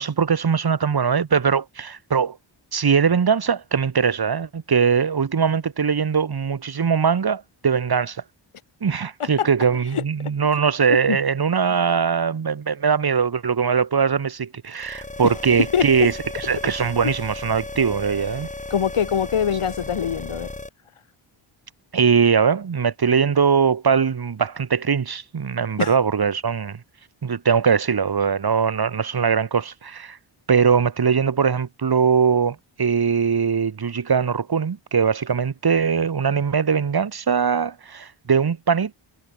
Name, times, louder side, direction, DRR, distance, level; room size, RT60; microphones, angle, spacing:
voice 1, 0.0-2.4 2.7-8.2 8.8-18.5 21.9-26.8 27.2-30.2 30.5-38.9, right 6 dB, 50° right, 3.4 m, -21 dB
sound 1, 14.8-20.7, left 2 dB, 15° left, 6.4 m, -35 dB
voice 2, 18.7-20.5 25.8-25.9, left 8 dB, 85° left, 5.8 m, -23 dB
wide cardioid pair, 165°, 49 cm